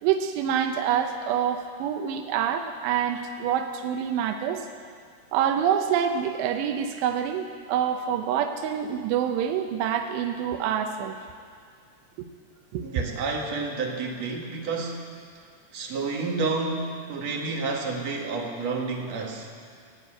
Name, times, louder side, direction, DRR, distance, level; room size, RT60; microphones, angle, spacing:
voice 1, 0.0-4.6 5.3-11.2 12.7-12.8, right 9 dB, 85° right, 5 dB, 2.9 m, -26 dB
voice 2, 12.8-15.1 15.7-19.5, right 3 dB, 55° right, 0 dB, 2.0 m, -30 dB
17.5 x 8.0 x 8.8 m, 2.1 s
omnidirectional pair, 5.0 m